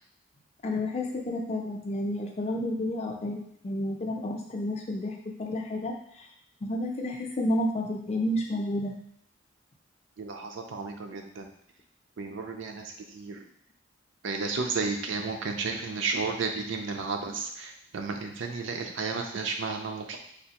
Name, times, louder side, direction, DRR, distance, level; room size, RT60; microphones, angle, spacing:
voice 1, 0.6-3.4 3.6-6.3 6.6-8.9, left 1 dB, 35° left, 1 dB, 0.4 m, -30 dB
voice 2, 10.2-11.5 12.2-13.5 14.2-20.2, right 4 dB, 70° right, 4 dB, 0.4 m, -33 dB
3.3 x 2.4 x 2.8 m, 0.69 s
head